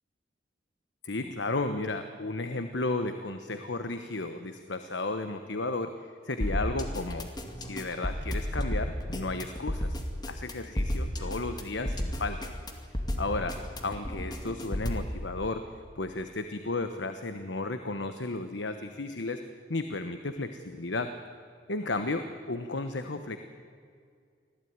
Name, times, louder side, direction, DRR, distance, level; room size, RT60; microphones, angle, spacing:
voice 1, 1.0-5.9 6.2-7.3 7.6-10.0 10.3-12.4 13.2-13.6 13.8-15.6 16.0-19.4 19.7-21.1 21.7-23.4, left 2 dB, 80° left, 8 dB, 1.1 m, -33 dB
sound 1, 6.4-15.1, equal, 25° left, 2.3 m, -32 dB
25.0 x 16.5 x 9.5 m, 2.2 s
head